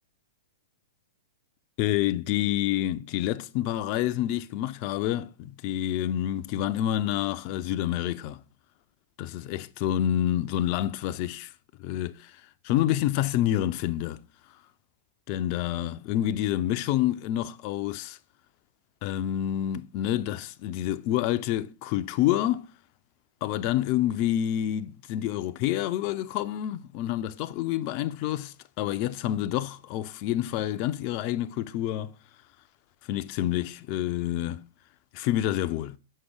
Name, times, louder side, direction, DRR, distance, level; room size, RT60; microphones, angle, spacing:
voice 1, 1.8-8.4 9.2-11.5 11.8-14.2 15.3-18.2 19.0-22.7 23.4-32.1 33.0-34.6 35.1-36.0, left 12 dB, 40° left, 0.3 m, -28 dB
6.4 x 5.5 x 3.3 m
figure-of-eight pair, 105°, 0 cm